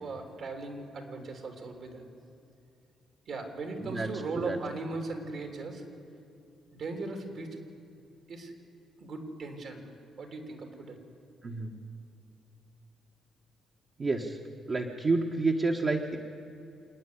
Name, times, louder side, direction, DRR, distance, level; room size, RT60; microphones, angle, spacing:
voice 1, 0.0-2.0 3.3-5.9 6.7-7.6 8.3-8.5 9.0-9.8 10.2-11.0, right 3 dB, 60° right, 4 dB, 3.4 m, -38 dB
voice 2, 3.8-4.1 4.4-4.6 11.4-11.8 14.0-14.4 14.7-16.2, right 3 dB, 40° right, 0 dB, 1.4 m, -29 dB
27.0 x 9.7 x 9.8 m, 2.7 s
cardioid pair, 90°, 0 cm